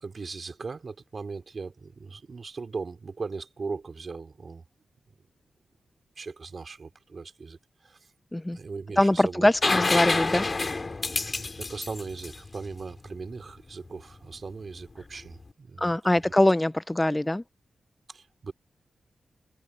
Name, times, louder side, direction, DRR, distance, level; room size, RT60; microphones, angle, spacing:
voice 1, 0.0-4.6 6.2-7.6 7.8-8.0 8.5-9.8 11.1-16.0 18.1-18.5, right 4 dB, 45° right, 3.2 m, -39 dB
voice 2, 9.0-10.5 15.8-17.4, left 1 dB, 10° left, 0.4 m, -23 dB
sound 1, 9.6-13.3 15.2-15.3, left 3 dB, 35° left, 3.4 m, -28 dB
wide cardioid pair, 115°, 0 cm